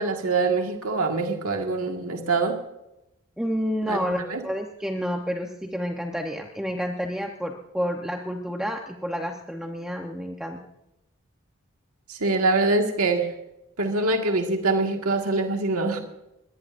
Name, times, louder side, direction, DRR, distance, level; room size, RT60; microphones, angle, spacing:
voice 1, 0.0-2.6 3.9-4.4 12.1-13.3 13.8-16.0, right 3 dB, 90° right, 3 dB, 1.8 m, -24 dB
voice 2, 3.4-10.6, equal, 5° right, 2 dB, 0.8 m, -29 dB
22.0 x 18.5 x 2.6 m, 0.90 s
head